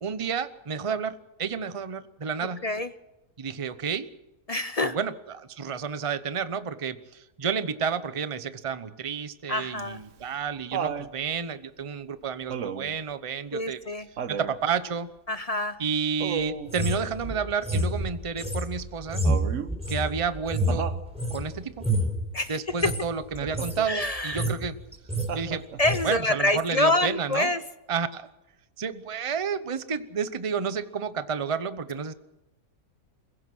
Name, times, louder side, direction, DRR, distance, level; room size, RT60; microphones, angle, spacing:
voice 1, 0.0-2.6 3.4-4.1 4.8-13.8 14.3-15.1 15.8-19.2 19.9-20.9 21.3-21.8 22.5-24.8 25.3-25.6 26.0-27.5 27.9-28.3 28.8-32.1, right 6 dB, 25° right, 12 dB, 0.8 m, -30 dB
voice 2, 4.5-5.0 9.5-10.0 13.5-14.1 15.3-15.8 22.3-22.6 23.9-24.5 25.8-27.6, left 2 dB, 35° left, 12 dB, 0.6 m, -26 dB
Laughter, 9.8-11.1 12.5-13.0 14.2-14.6 16.2-16.7 19.2-19.7 20.7-21.0 23.4-23.9 25.3-25.9 27.3-27.4, right 7 dB, 60° right, 1.3 m, -33 dB
sound 1, 16.7-21.4 21.8-22.2 22.7-23.0 23.3-23.8 24.1-24.7 24.9-25.3 25.8-26.0, equal, 5° right, 4.1 m, -28 dB
28.0 x 16.5 x 6.2 m, 0.96 s
omnidirectional pair, 1.5 m